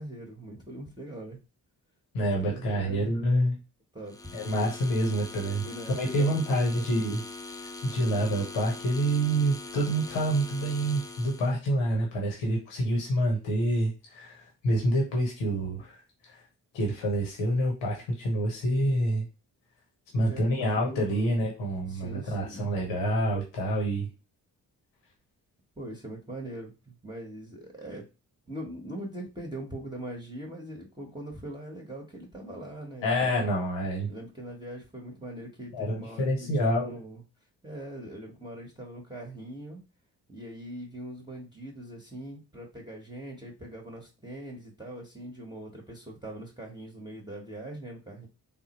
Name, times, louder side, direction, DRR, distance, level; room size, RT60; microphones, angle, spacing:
voice 1, 0.0-1.4 2.2-3.1 3.9-4.3 5.6-6.9 20.1-21.4 21.9-22.7 25.8-28.1 28.5-33.5 34.1-37.2 37.6-39.8 40.3-48.3, right 1 dB, 10° right, -2 dB, 1.0 m, -41 dB
voice 2, 2.1-3.6 4.3-5.6 5.9-7.2 7.6-16.4 16.7-19.3 20.1-24.1 33.0-34.1 35.7-37.0, right 1 dB, 85° left, -1 dB, 1.1 m, -27 dB
sound 1, 4.1-11.6, left 3 dB, 10° left, 0.3 m, -42 dB
3.6 x 2.1 x 2.9 m, 0.29 s
hypercardioid pair, 40°, 43 cm